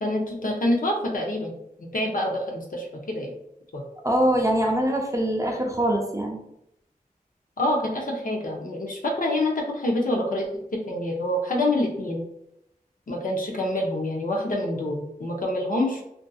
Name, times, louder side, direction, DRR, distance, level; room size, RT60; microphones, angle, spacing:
voice 1, 0.0-1.5 1.9-3.3 3.7-3.8 7.6-12.2 13.1-16.0, left 1 dB, 65° left, 0 dB, 0.6 m, -26 dB
voice 2, 4.0-6.4, right 1 dB, 20° right, 1 dB, 0.4 m, -23 dB
2.5 x 2.5 x 2.3 m, 0.80 s
wide cardioid pair, 75°, 15 cm